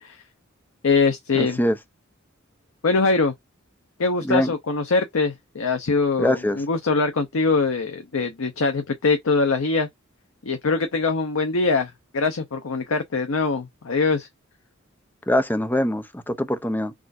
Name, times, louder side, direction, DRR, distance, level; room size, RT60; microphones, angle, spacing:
voice 1, 0.8-1.6 2.8-3.3 4.0-9.9 10.4-14.3, left 3 dB, 85° left, 0.7 m, -23 dB
voice 2, 1.3-1.8 4.2-4.5 6.2-6.6 15.3-16.9, left 1 dB, 10° left, 0.5 m, -23 dB
6.0 x 2.5 x 2.6 m
head